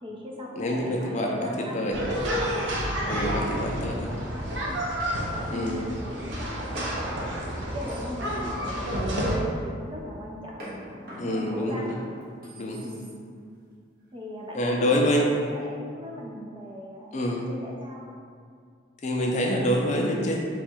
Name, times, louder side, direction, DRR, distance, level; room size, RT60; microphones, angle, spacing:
voice 1, 0.0-2.1 2.8-4.8 5.5-7.5 7.7-12.0 12.8-13.1 14.1-18.2, left 1 dB, 25° right, -2 dB, 0.4 m, -39 dB
voice 2, 0.6-2.0 3.1-4.1 5.5-5.8 11.2-11.9 12.6-12.8 14.5-15.3 17.1-17.4 19.0-20.4, left 1 dB, 35° left, -1 dB, 0.4 m, -26 dB
sound 1, 1.9-9.4, equal, 70° right, 0.7 m, -30 dB
sound 2, 2.7-5.2 6.7-9.4 10.6-13.4, equal, 50° right, 1.0 m, -44 dB
4.0 x 2.3 x 4.4 m, 2.1 s
head